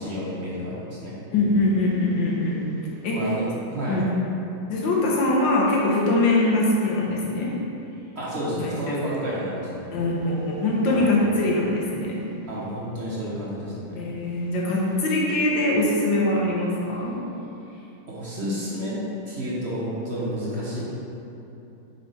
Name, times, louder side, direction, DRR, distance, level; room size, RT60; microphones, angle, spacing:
voice 1, 0.0-1.1 3.1-4.0 8.1-9.7 10.9-11.1 12.5-14.1 18.0-19.0 19.2-20.8, equal, 45° right, -7 dB, 0.9 m, -30 dB
voice 2, 1.3-2.6 3.0-3.3 3.9-4.1 4.7-7.5 8.5-9.0 9.9-12.2 13.9-17.2, left 2 dB, 70° left, -3 dB, 1.6 m, -23 dB
5.3 x 4.2 x 4.2 m, 2.9 s
omnidirectional pair, 2.2 m